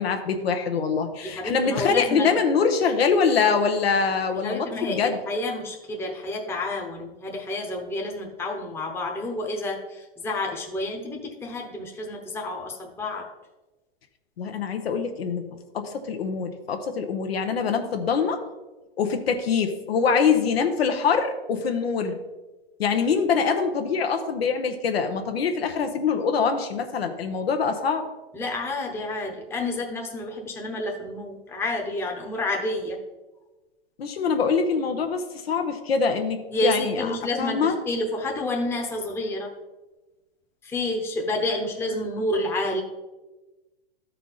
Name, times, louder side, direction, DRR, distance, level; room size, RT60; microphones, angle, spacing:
voice 1, 0.0-5.2 14.4-18.4 19.0-22.2 22.8-28.1 34.0-37.8, left 5 dB, 85° left, 5 dB, 1.0 m, -24 dB
voice 2, 1.2-2.4 4.4-13.3 28.3-33.0 36.5-39.5 40.6-42.8, left 2 dB, 10° left, 0 dB, 0.9 m, -29 dB
12.0 x 4.6 x 3.9 m, 1.1 s
hypercardioid pair, 135°, 30 cm